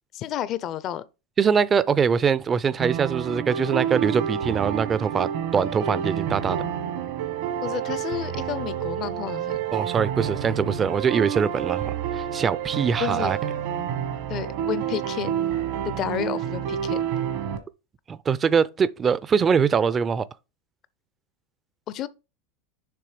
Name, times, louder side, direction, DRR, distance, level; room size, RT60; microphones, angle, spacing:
voice 1, 0.1-1.0 7.6-9.6 13.0-13.3 14.3-15.3 15.8-17.0 21.9-22.1, left 11 dB, 45° left, 0.6 m, -31 dB
voice 2, 1.4-6.6 9.7-13.4 18.1-20.2, right 6 dB, 25° right, 0.4 m, -23 dB
sound 1, 2.8-17.6, right 9 dB, 70° right, 1.3 m, -29 dB
6.9 x 3.2 x 5.0 m
supercardioid pair, 110°, 0 cm